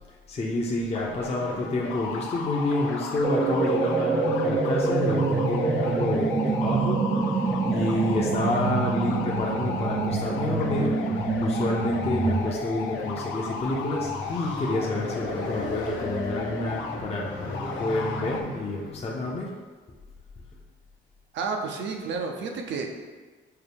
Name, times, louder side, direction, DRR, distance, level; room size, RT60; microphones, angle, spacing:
voice 1, 0.3-7.0 7.3-11.0 11.4-19.5, left 1 dB, 30° left, -3 dB, 0.6 m, -28 dB
sound 1, 0.9-18.4, left 5 dB, 90° left, 0.4 m, -35 dB
That One Night On Hoth, 3.2-12.4, right 4 dB, 20° right, 0.4 m, -26 dB
Motorcycle, 7.1-19.4, left 1 dB, 65° left, 1.0 m, -40 dB
voice 2, 21.3-22.9, right 4 dB, 70° right, 3 dB, 0.6 m, -31 dB
5.5 x 2.2 x 3.4 m, 1.4 s
cardioid pair, 90°, 20 cm